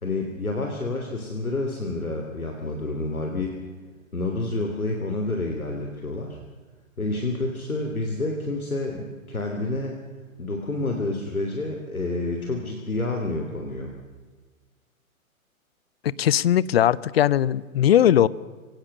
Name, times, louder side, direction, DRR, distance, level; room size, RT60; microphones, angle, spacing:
voice 1, 0.0-3.6 4.1-6.4 7.0-10.0 10.4-13.9, left 2 dB, 80° left, 3 dB, 3.3 m, -29 dB
voice 2, 16.0-18.3, left 11 dB, 45° left, 21 dB, 0.7 m, -19 dB
24.0 x 18.0 x 6.7 m, 1.4 s
figure-of-eight pair, 125°, 42 cm